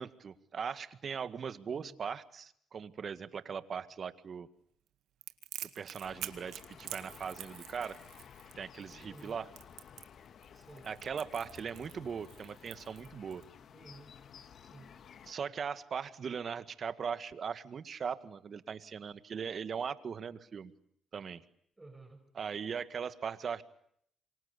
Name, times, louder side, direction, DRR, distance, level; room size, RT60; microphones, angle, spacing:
voice 1, 0.0-4.5 5.6-8.0 8.6-9.5 10.8-13.4 15.3-20.7 21.1-21.4 22.4-23.6, right 6 dB, 55° right, 12 dB, 1.9 m, -39 dB
Crackle, 5.2-13.4, right 12 dB, 85° right, 1.9 m, -47 dB
sound 1, 6.0-15.3, left 8 dB, 65° left, 1.6 m, -54 dB
voice 2, 9.0-9.4 10.5-10.9 13.7-14.1 14.6-14.9 21.8-22.2, right 2 dB, 15° right, 6 dB, 5.8 m, -53 dB
28.0 x 24.0 x 8.4 m, 0.69 s
supercardioid pair, 70°, 0 cm